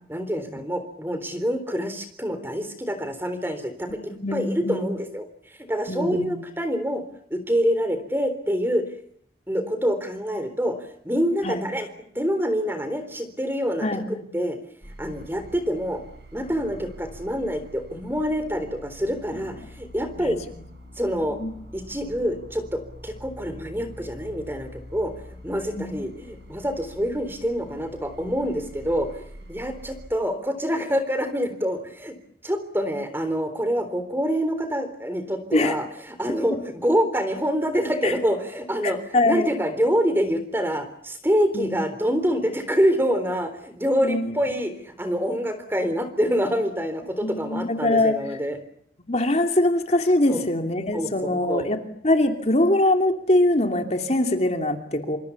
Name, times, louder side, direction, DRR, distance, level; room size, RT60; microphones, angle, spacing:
voice 1, 0.1-5.3 5.7-7.0 7.3-8.8 9.5-11.9 12.2-14.6 15.0-16.0 16.3-20.4 21.0-21.4 21.7-25.1 25.4-29.2 29.5-32.1 32.4-39.0 39.2-48.6 50.3-50.4 50.9-51.7, equal, 10° right, 9 dB, 3.7 m, -26 dB
voice 2, 3.9-4.9 5.9-6.3 11.4-11.6 13.8-14.3 19.3-19.4 20.2-20.3 21.3-21.5 25.8-25.9 35.5-35.8 38.0-38.2 38.8-39.5 41.5-41.7 44.0-44.4 47.2-48.2 49.1-51.8 52.0-55.2, left 1 dB, 35° left, 5 dB, 2.8 m, -23 dB
sound 1, 14.8-30.1, equal, 70° right, 7.5 m, -45 dB
27.0 x 26.5 x 7.2 m, 0.66 s
head